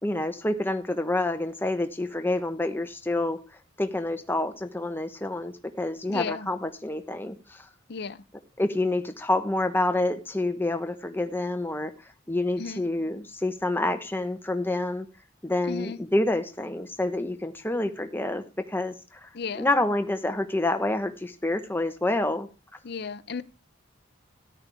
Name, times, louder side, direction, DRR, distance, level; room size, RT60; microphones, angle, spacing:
voice 1, 0.0-3.4 3.8-7.6 8.6-11.9 12.3-15.1 15.4-19.3 19.6-22.5, left 2 dB, 10° left, 1.0 m, -28 dB
voice 2, 6.1-6.5 7.9-8.2 12.6-12.8 15.6-16.0 19.3-19.7 22.8-23.4, left 5 dB, 55° left, 0.6 m, -34 dB
13.5 x 10.5 x 3.5 m
head